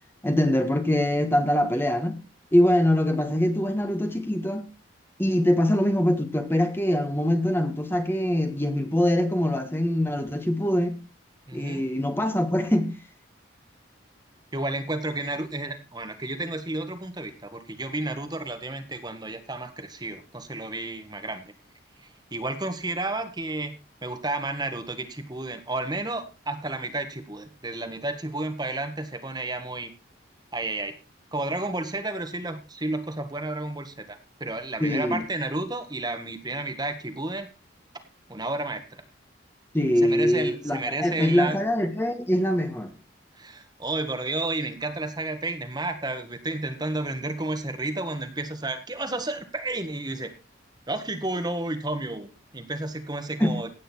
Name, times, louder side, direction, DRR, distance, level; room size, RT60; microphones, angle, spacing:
voice 1, 0.2-2.2 2.5-4.6 5.2-11.0 11.5-13.0 34.8-35.2 39.7-42.9 53.4-53.6, left 1 dB, 10° left, 1.5 m, -23 dB
voice 2, 11.5-11.8 14.5-21.5 22.0-23.7 24.0-29.9 30.5-31.0 31.3-37.5 38.3-39.0 40.0-41.6 43.4-50.3 50.9-53.7, right 2 dB, 20° right, 1.6 m, -31 dB
17.0 x 9.1 x 4.5 m
head